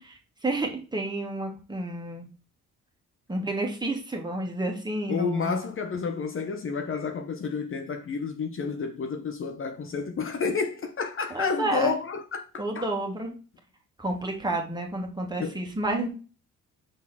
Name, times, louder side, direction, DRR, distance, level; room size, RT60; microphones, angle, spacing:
voice 1, 0.0-2.3 3.3-5.6 11.3-12.0 12.6-13.3 14.0-16.1, right 2 dB, 15° right, 1.9 m, -30 dB
voice 2, 5.1-12.8 15.4-15.6, left 5 dB, 45° left, 0.9 m, -30 dB
6.2 x 4.1 x 4.1 m
cardioid pair, 90°, 30 cm